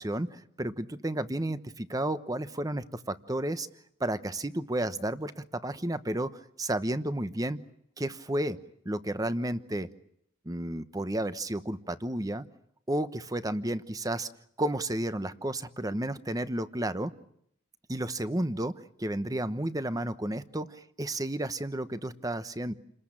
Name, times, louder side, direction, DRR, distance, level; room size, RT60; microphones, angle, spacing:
voice 1, 0.0-3.7 4.0-6.3 6.6-7.6 8.0-8.6 8.8-9.9 10.4-12.4 12.9-14.3 14.6-17.1 17.9-18.7 19.0-22.7, right 1 dB, 20° right, 12 dB, 1.1 m, -32 dB
29.5 x 21.0 x 8.9 m, 0.72 s
head